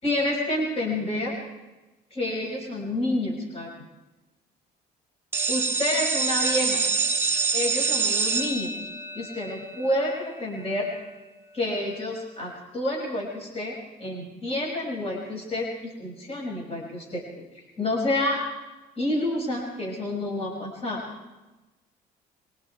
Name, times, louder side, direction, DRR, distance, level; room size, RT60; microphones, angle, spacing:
voice 1, 0.0-1.4 2.1-3.7 5.5-6.8 7.5-10.9 11.5-17.5 17.8-18.4 19.0-21.0, left 1 dB, 35° left, -2 dB, 6.6 m, -29 dB
sound 1, 5.3-11.0, right 4 dB, 15° right, 2.4 m, -27 dB
24.5 x 23.5 x 4.8 m, 1.1 s
cardioid pair, 110°, 17 cm